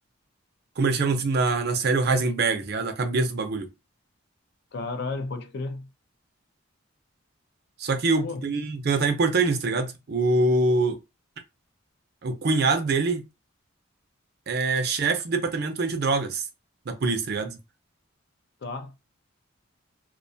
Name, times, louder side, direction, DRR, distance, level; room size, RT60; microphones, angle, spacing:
voice 1, 0.8-3.7 7.8-11.0 12.2-13.2 14.5-16.4 16.9-17.6, right 3 dB, 50° right, 0.4 m, -24 dB
voice 2, 4.7-5.9 8.2-8.5 18.6-18.9, left 3 dB, 50° left, 0.4 m, -33 dB
2.4 x 2.2 x 2.6 m
head